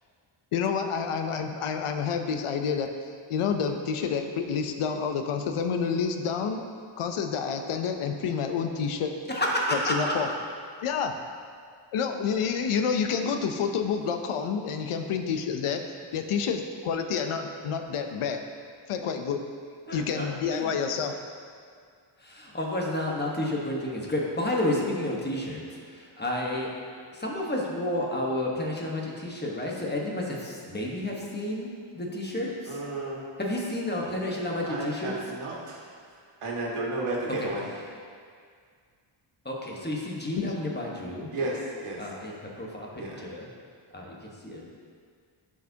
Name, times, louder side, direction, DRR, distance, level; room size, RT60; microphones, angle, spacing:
voice 1, 0.5-2.9 3.3-6.7 7.0-9.1 9.7-10.3 10.8-11.2 11.9-15.8 16.1-18.4 18.9-19.4 19.9-21.2 40.4-40.5, left 6 dB, 85° left, 6 dB, 0.7 m, -28 dB
voice 2, 9.3-10.1 19.9-20.7 22.2-26.7 27.1-32.8 33.4-35.1 37.4-37.5 39.4-41.3 42.0-43.5 43.9-44.7, left 1 dB, 20° left, -2 dB, 1.2 m, -31 dB
voice 3, 32.7-33.2 34.7-35.8 36.4-37.6 41.3-42.0 42.9-43.2, right 2 dB, 85° right, -4 dB, 1.6 m, -32 dB
12.0 x 4.8 x 2.8 m, 2.1 s
wide cardioid pair, 110°, 50 cm